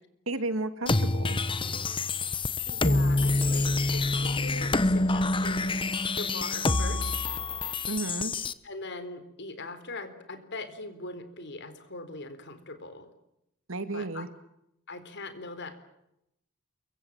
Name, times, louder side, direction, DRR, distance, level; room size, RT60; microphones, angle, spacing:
voice 1, 0.3-1.4 7.9-8.3 13.7-14.3, right 2 dB, 70° right, 10 dB, 2.5 m, -32 dB
sound 1, 0.9-8.5, left 2 dB, 25° left, 1.1 m, -27 dB
voice 2, 2.7-5.7 6.1-7.2 8.6-13.1 13.9-14.2 14.9-15.8, left 2 dB, 55° left, 10 dB, 4.0 m, -41 dB
28.5 x 24.0 x 7.5 m, 0.83 s
head